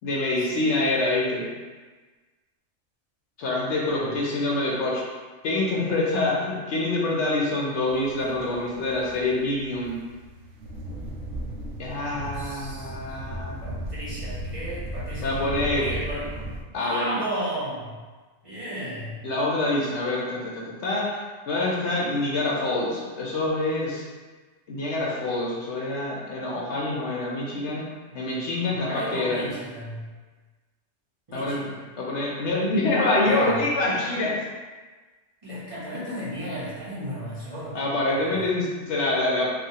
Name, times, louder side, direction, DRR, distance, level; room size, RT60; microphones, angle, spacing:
voice 1, 0.0-1.5 3.4-5.0 5.4-10.0 11.8-13.6 15.2-15.8 16.7-17.2 19.2-24.0 24.7-27.9 28.1-29.4 31.3-31.6 32.0-34.3 37.7-39.5, left 2 dB, 70° left, -4 dB, 0.9 m, -26 dB
sound 1, 7.9-16.6, right 1 dB, 90° right, 0.9 m, -36 dB
voice 2, 12.1-13.2 13.6-16.4 16.7-18.0 18.4-19.2 28.1-30.1 31.3-31.7 33.2-33.7 35.4-37.8 38.1-38.4, equal, 30° right, -11 dB, 1.0 m, -35 dB
3.2 x 2.2 x 2.8 m, 1.3 s
omnidirectional pair, 1.2 m